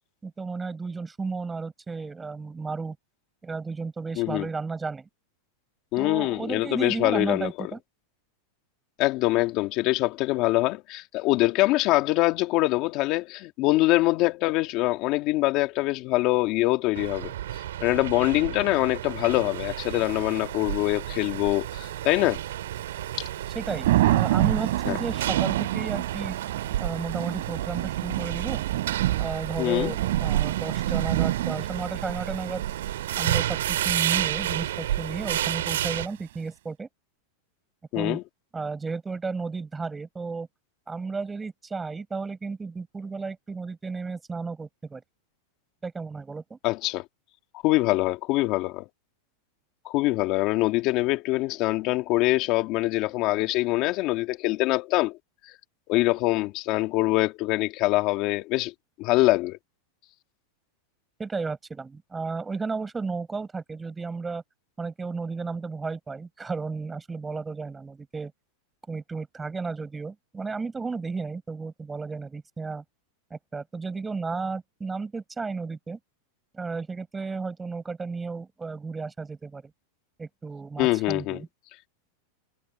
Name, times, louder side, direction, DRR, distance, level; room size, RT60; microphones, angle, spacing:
voice 1, 0.2-3.0 3.4-5.1 6.0-7.8 23.5-26.4 26.8-28.6 29.2-32.6 33.2-36.9 38.0-38.2 38.5-40.5 40.9-45.0 45.8-46.6 61.2-64.4 64.8-68.3 68.9-72.8 73.3-76.0 76.5-79.6 80.2-81.5, right 4 dB, 10° right, 7.5 m, -33 dB
voice 2, 4.2-4.5 5.9-7.7 9.0-17.3 17.8-22.4 23.2-23.3 24.9-25.0 29.6-29.9 37.9-38.2 46.6-47.0 47.6-48.9 49.8-55.2 55.9-58.7 59.0-59.6 80.8-81.4, left 19 dB, 40° left, 2.4 m, -24 dB
sound 1, 17.0-36.1, right 12 dB, 90° right, 4.9 m, -31 dB
Thunder / Rain, 19.5-36.1, right 15 dB, 70° right, 6.1 m, -30 dB
supercardioid pair, 155°, 0 cm